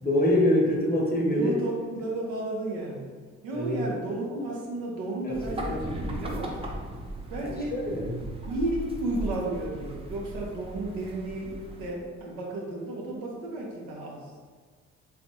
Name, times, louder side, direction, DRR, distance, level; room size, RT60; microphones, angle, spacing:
voice 1, 0.0-1.5 3.5-4.0 5.2-5.4 5.7-5.8 7.6-8.2, left 1 dB, 25° left, -2 dB, 0.8 m, -25 dB
voice 2, 1.3-3.1 3.4-5.8 6.1-6.6 7.3-8.2 8.5-14.3, right 2 dB, 70° right, -2 dB, 0.7 m, -33 dB
sound 1, 5.3-11.9, right 1 dB, 15° right, 0.5 m, -37 dB
3.4 x 2.4 x 2.7 m, 1.6 s
hypercardioid pair, 40°, 37 cm